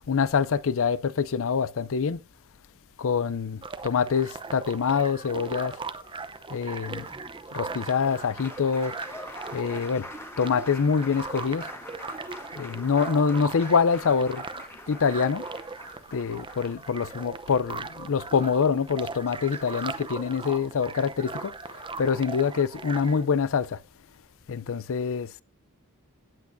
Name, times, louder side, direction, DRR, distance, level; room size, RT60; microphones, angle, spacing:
voice 1, 0.1-2.2 3.0-5.8 6.5-7.1 7.5-8.9 9.5-10.1 10.4-11.7 12.6-14.4 14.9-15.4 16.1-21.5 22.0-23.8 24.5-25.3, left 6 dB, 65° left, 0.5 m, -25 dB
sound 1, 3.6-23.2, right 4 dB, 25° right, 0.7 m, -39 dB
Applause, 7.0-17.2 18.6-18.7 19.0-20.0, left 1 dB, 10° left, 1.6 m, -45 dB
18.0 x 8.4 x 2.6 m
head